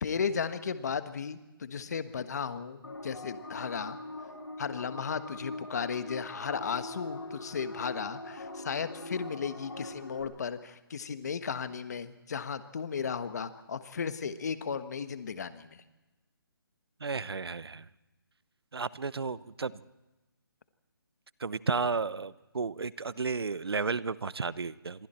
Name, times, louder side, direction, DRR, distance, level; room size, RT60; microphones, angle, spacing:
voice 1, 0.0-4.0 4.6-15.8, left 6 dB, 45° left, 11 dB, 1.4 m, -35 dB
sound 1, 2.8-10.2, left 2 dB, 90° left, 7.9 m, -42 dB
voice 2, 17.0-17.9 18.7-19.8 21.4-25.1, right 4 dB, 85° right, 17 dB, 0.9 m, -33 dB
28.0 x 23.0 x 4.4 m, 1.1 s
hypercardioid pair, 170°, 13 cm